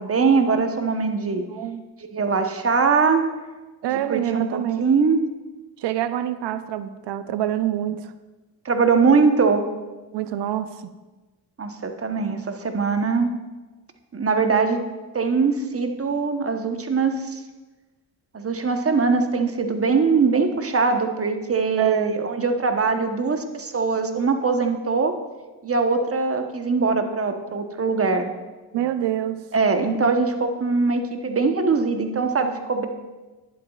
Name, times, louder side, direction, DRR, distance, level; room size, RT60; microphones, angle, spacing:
voice 1, 0.0-1.4 2.1-3.2 3.9-5.2 8.6-9.6 11.6-13.3 14.1-14.8 15.1-17.4 18.3-25.1 25.6-28.3 29.5-32.9, right 4 dB, 30° right, 6 dB, 1.1 m, -22 dB
voice 2, 1.5-1.8 3.8-4.8 5.8-8.1 10.1-10.9 21.8-22.1 28.7-29.4, right 12 dB, 65° right, 11 dB, 0.7 m, -26 dB
10.5 x 8.2 x 2.4 m, 1.2 s
supercardioid pair, 55°, 44 cm